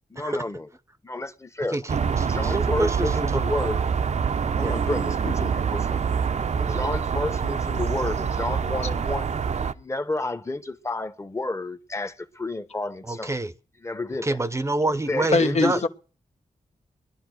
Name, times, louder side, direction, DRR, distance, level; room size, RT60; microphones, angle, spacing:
voice 1, 0.1-0.7 1.0-1.8 2.1-3.8 4.5-6.0 6.5-9.3 9.8-13.4 13.8-14.4 15.1-15.9, left 2 dB, 20° left, 1.1 m, -31 dB
voice 2, 1.7-3.6 4.6-4.8 6.7-6.8 13.1-13.5 14.2-15.8, right 2 dB, 20° right, 0.7 m, -27 dB
sound 1, 1.9-9.7, right 6 dB, 55° right, 0.7 m, -25 dB
voice 3, 15.3-15.9, left 3 dB, 55° left, 0.9 m, -21 dB
20.0 x 11.5 x 6.4 m
wide cardioid pair, 115°, 14 cm